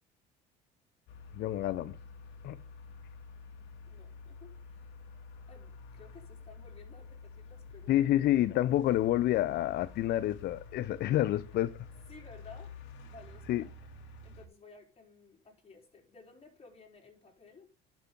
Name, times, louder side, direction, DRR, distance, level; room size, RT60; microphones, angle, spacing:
sound 1, 1.1-14.5, left 4 dB, 75° left, 1.9 m, -49 dB
voice 1, 1.3-2.0 2.4-2.6 7.9-11.8 13.5-13.7, left 13 dB, 55° left, 0.5 m, -28 dB
voice 2, 3.8-4.8 5.5-8.1 12.1-13.7 14.2-17.7, left 4 dB, 30° left, 4.0 m, -55 dB
11.5 x 6.0 x 3.8 m
supercardioid pair, 75°, 19 cm